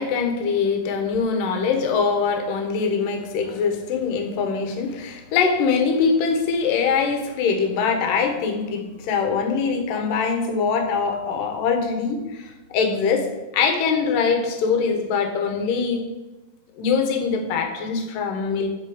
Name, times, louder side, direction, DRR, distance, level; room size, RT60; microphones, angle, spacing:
voice 1, 0.0-13.3 13.5-16.1 16.8-18.7, left 5 dB, 65° left, 4 dB, 2.5 m, -23 dB
10.5 x 4.4 x 7.8 m, 1.1 s
omnidirectional pair, 4.8 m